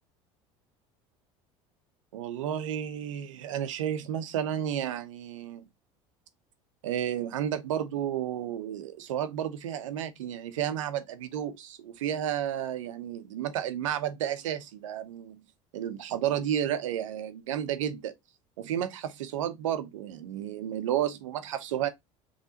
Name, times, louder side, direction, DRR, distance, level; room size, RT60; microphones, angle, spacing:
voice 1, 2.1-5.6 6.8-15.4 15.7-18.1 18.6-21.9, right 10 dB, 85° right, 0.9 m, -32 dB
5.7 x 3.4 x 2.8 m
hypercardioid pair, 80°, 16 cm